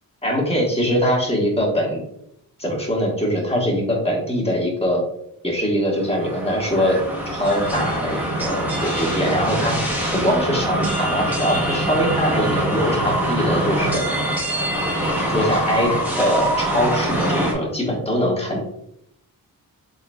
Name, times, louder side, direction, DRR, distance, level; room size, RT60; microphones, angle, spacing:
voice 1, 0.2-2.0 2.6-5.0 5.4-7.0 7.2-14.0 15.1-15.9 16.2-18.6, equal, 15° left, -2 dB, 1.2 m, -22 dB
sound 1, 6.0-17.5, right 1 dB, 5° right, 0.9 m, -24 dB
3.8 x 3.8 x 2.2 m, 0.74 s
wide cardioid pair, 110°, 36 cm